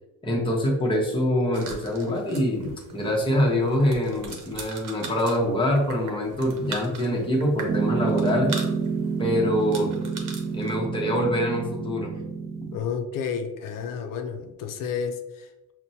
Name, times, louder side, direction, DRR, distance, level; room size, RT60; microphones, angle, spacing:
voice 1, 0.2-8.5 9.2-9.9 10.5-12.1, equal, 15° left, -1 dB, 0.8 m, -24 dB
sound 1, 1.5-10.8, right 4 dB, 70° right, 0.8 m, -41 dB
Piano, 7.7-12.8, right 5 dB, 20° right, 0.3 m, -28 dB
voice 2, 12.7-15.7, left 6 dB, 80° left, 5 dB, 0.5 m, -31 dB
5.8 x 2.1 x 2.7 m, 1.0 s
cardioid pair, 125°, 33 cm